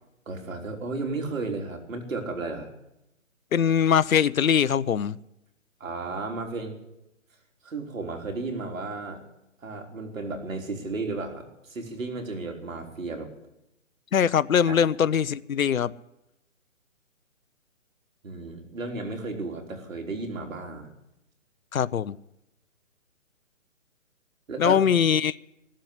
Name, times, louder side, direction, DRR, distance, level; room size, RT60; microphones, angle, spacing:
voice 1, 0.3-2.7 5.8-6.8 7.6-9.2 9.6-13.3 14.7-14.8 18.2-20.9 24.5-24.8, right 3 dB, 75° right, 3 dB, 3.8 m, -33 dB
voice 2, 3.5-5.2 14.1-15.9 21.7-22.1 24.6-25.3, left 8 dB, 90° left, 16 dB, 0.7 m, -22 dB
16.5 x 7.7 x 9.9 m, 0.85 s
hypercardioid pair, 155°, 40 cm